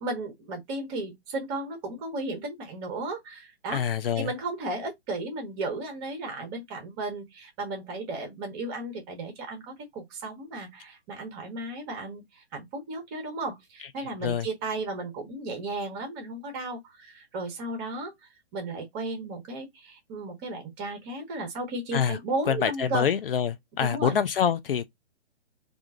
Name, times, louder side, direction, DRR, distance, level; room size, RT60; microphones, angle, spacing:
voice 1, 0.0-3.8 4.2-18.1 18.5-23.1 23.8-24.1, right 2 dB, 20° right, 0.9 m, -34 dB
voice 2, 3.7-4.3 14.0-14.5 21.9-22.2 22.5-24.9, left 8 dB, 60° left, 0.4 m, -26 dB
2.4 x 2.3 x 3.6 m
figure-of-eight pair, 135°, 33 cm